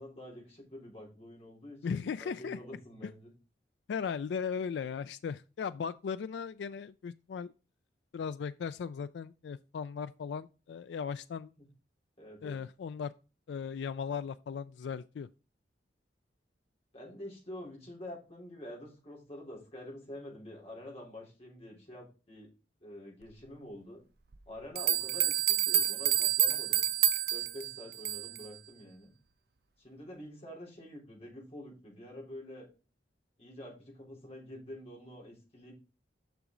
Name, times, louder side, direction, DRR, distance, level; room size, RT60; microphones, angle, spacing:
voice 1, 0.0-3.3 11.6-11.7 12.2-12.6 16.9-22.5 22.8-24.0 24.5-27.0 27.3-29.1 29.8-32.7 33.4-35.7, left 1 dB, 35° left, 3.6 m, -47 dB
voice 2, 1.8-2.6 3.9-7.5 8.1-11.5 12.4-13.1 13.5-15.3, left 6 dB, 75° left, 0.3 m, -37 dB
sound 1, 24.3-24.4 24.8-28.5, right 12 dB, 60° right, 0.6 m, -28 dB
6.9 x 6.0 x 3.7 m
head